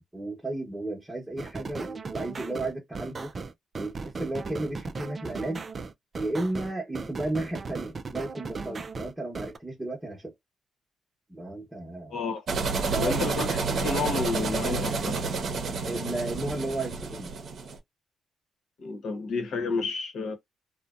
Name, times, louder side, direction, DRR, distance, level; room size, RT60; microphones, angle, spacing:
voice 1, 0.0-3.3 3.8-5.6 6.2-10.3 11.3-12.2 12.9-13.2 15.7-17.3, right 2 dB, 10° right, 0.9 m, -33 dB
sound 1, 1.4-9.6, right 4 dB, 35° right, 0.3 m, -37 dB
voice 2, 12.1-12.5 13.0-15.2 18.8-20.3, left 4 dB, 70° left, 0.9 m, -30 dB
sound 2, 12.5-17.8, right 4 dB, 55° right, 0.7 m, -29 dB
2.6 x 2.1 x 2.3 m
cardioid pair, 90°, 0 cm